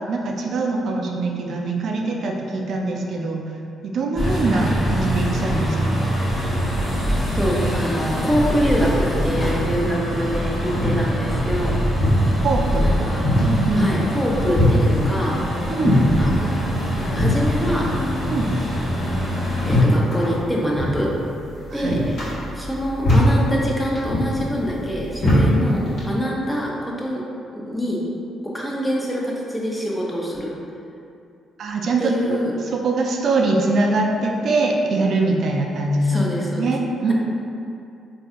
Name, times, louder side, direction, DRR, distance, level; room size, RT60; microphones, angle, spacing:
voice 1, 0.1-3.4 3.8-5.8 12.4-12.9 13.4-13.9 15.7-16.0 18.3-18.5 21.7-22.0 31.6-32.4 32.7-36.3 36.6-37.1, right 2 dB, 60° right, 0 dB, 0.4 m, -22 dB
sound 1, 4.2-19.8, equal, 30° left, 1.0 m, -24 dB
voice 2, 7.4-11.8 12.8-13.2 13.7-15.3 16.2-16.7 17.1-17.9 19.6-21.1 21.7-22.2 22.5-27.2 27.5-28.0 28.5-30.5 32.0-32.5 36.0-36.7 37.1-37.2, equal, 10° left, -4 dB, 0.6 m, -25 dB
sound 2, 10.2-26.1, left 1 dB, 60° left, 1.3 m, -23 dB
3.8 x 2.7 x 2.4 m, 2.6 s
cardioid pair, 90°, 0 cm